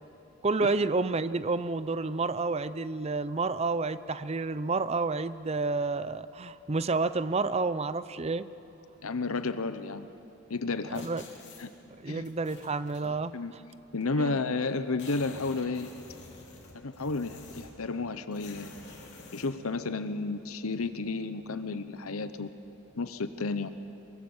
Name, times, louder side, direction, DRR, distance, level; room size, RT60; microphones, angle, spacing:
voice 1, 0.4-8.5 10.9-11.3 12.0-13.4 14.2-14.3, right 3 dB, 30° right, 14 dB, 0.6 m, -30 dB
voice 2, 9.0-10.1 10.5-11.1 11.6-11.7 12.1-12.3 13.0-13.5 13.9-15.9 16.7-18.7 19.3-22.5 23.0-23.7, left 3 dB, 75° left, 11 dB, 0.9 m, -32 dB
sound 1, 10.9-11.7 12.2-13.1 14.0-14.1 14.3-14.4 14.7-17.8 18.3-19.5, left 3 dB, 55° left, 3.9 m, -49 dB
24.0 x 23.5 x 7.3 m, 2.9 s
head